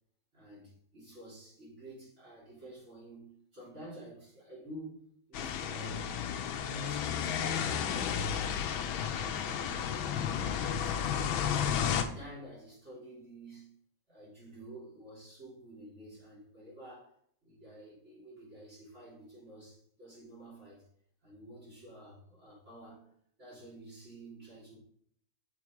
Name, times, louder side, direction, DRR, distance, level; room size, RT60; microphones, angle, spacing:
voice 1, 0.3-6.1 6.5-8.6 8.9-11.1 11.5-13.7 14.1-17.2 17.4-20.8 21.2-23.1 23.4-24.8, right 1 dB, 35° right, -7 dB, 3.4 m, -50 dB
sound 1, 5.3-12.0, left 8 dB, 80° left, 1.5 m, -32 dB
5.9 x 5.0 x 4.6 m, 0.65 s
omnidirectional pair, 2.2 m